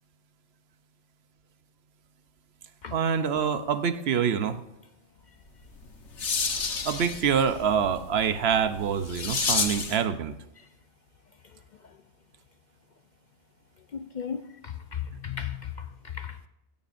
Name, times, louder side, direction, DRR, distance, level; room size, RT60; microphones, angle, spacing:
voice 1, 2.9-4.6 6.8-10.4, right 7 dB, 70° right, 0.9 m, -26 dB
sound 1, 5.6-10.1, left 5 dB, 90° left, 1.5 m, -31 dB
voice 2, 13.9-16.5, left 8 dB, 55° left, 0.6 m, -36 dB
16.0 x 13.0 x 2.6 m
omnidirectional pair, 1.2 m